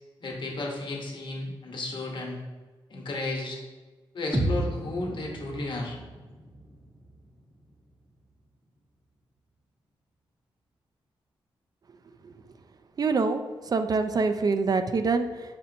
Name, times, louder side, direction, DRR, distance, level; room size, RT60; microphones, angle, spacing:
voice 1, 0.2-2.4 2.9-3.6 4.1-6.0, left 2 dB, 55° left, 0 dB, 1.0 m, -33 dB
sound 1, 4.3-8.3, right 1 dB, 10° right, 0.7 m, -34 dB
voice 2, 13.0-13.4 13.7-15.6, right 4 dB, 40° right, 9 dB, 0.3 m, -25 dB
4.2 x 4.2 x 2.7 m, 1.3 s
cardioid pair, 80°, 10 cm